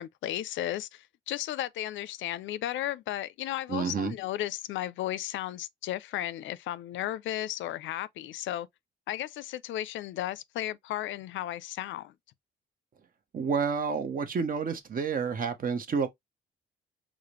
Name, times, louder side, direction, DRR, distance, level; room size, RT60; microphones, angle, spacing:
voice 1, 0.0-8.7 9.1-12.1, left 13 dB, 75° left, 0.4 m, -34 dB
voice 2, 3.7-4.2 13.3-16.1, right 5 dB, 45° right, 0.9 m, -29 dB
4.8 x 2.1 x 2.9 m
cardioid pair, 90°, 20 cm